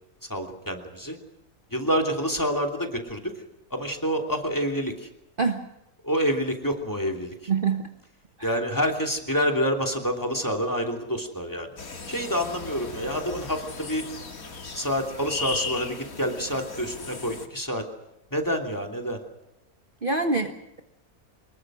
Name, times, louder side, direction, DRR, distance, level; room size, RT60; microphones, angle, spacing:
voice 1, 0.3-1.2 1.7-3.3 3.7-5.1 6.0-7.3 8.4-11.7 12.1-14.1 14.7-17.9 18.3-19.2, equal, 10° left, 3 dB, 2.9 m, -27 dB
voice 2, 7.5-7.9 8.4-8.6 20.0-20.8, right 4 dB, 35° right, 5 dB, 1.5 m, -26 dB
sound 1, 11.8-17.5, left 4 dB, 65° left, 2.6 m, -37 dB
25.0 x 21.0 x 6.3 m, 0.90 s
omnidirectional pair, 1.6 m